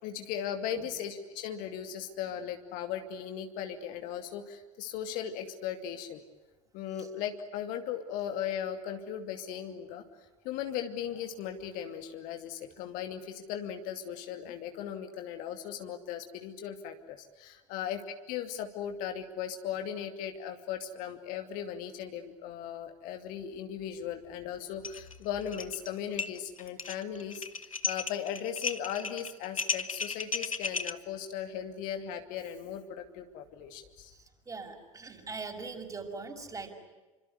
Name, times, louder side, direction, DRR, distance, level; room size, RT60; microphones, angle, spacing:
voice 1, 0.0-6.2 6.7-10.0 10.4-18.0 18.3-27.5 27.9-34.1, left 9 dB, 55° left, 6 dB, 2.6 m, -37 dB
sound 1, 24.8-25.1 25.4-25.9 26.2-30.9, left 4 dB, 90° left, 1.0 m, -34 dB
voice 2, 34.5-36.7, right 4 dB, 20° right, 4 dB, 6.2 m, -41 dB
28.0 x 26.0 x 8.2 m, 1.1 s
figure-of-eight pair, 70°, 17 cm